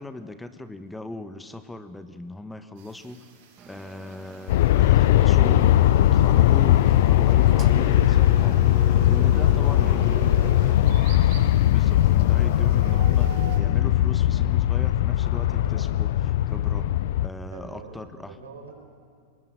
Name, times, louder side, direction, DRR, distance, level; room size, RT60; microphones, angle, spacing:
voice 1, 0.0-3.3 3.7-10.4 11.7-16.9 17.2-18.4, left 2 dB, 10° left, 10 dB, 1.1 m, -38 dB
sound 1, 2.8-13.6, right 7 dB, 60° right, 6.3 m, -48 dB
Engine, 3.6-10.7, right 7 dB, 35° right, 1.5 m, -41 dB
Aircraft, 4.5-17.3, left 13 dB, 65° left, 0.5 m, -19 dB
voice 2, 9.7-11.0 17.5-18.0 18.3-18.7, right 4 dB, 80° right, 3 dB, 5.2 m, -44 dB
23.5 x 20.0 x 7.9 m, 2.3 s
hypercardioid pair, 95°, 0 cm